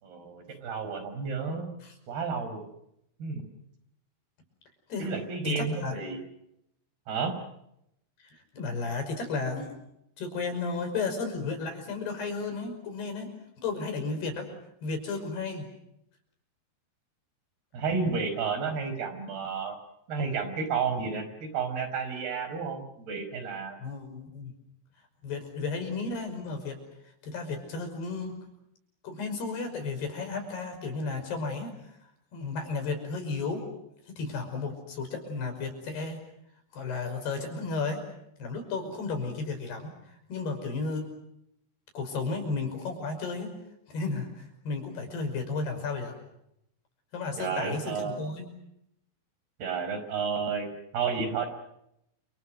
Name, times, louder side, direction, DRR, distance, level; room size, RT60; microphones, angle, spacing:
voice 1, 0.0-1.7 2.1-2.6 3.2-3.4 5.0-6.2 7.1-7.3 17.7-19.8 20.1-23.8 47.4-48.3 49.6-50.7 50.9-51.5, right 5 dB, 70° right, 9 dB, 6.8 m, -31 dB
voice 2, 5.4-6.0 8.2-9.8 10.2-13.3 13.6-14.5 14.8-15.7 23.8-24.5 25.2-26.8 27.2-28.4 29.0-32.0 32.3-33.7 34.1-36.2 36.7-38.0 38.4-41.1 41.9-43.5 43.9-46.2 47.1-48.5, left 4 dB, 75° left, 6 dB, 7.6 m, -33 dB
29.5 x 28.5 x 6.4 m, 0.80 s
omnidirectional pair, 4.7 m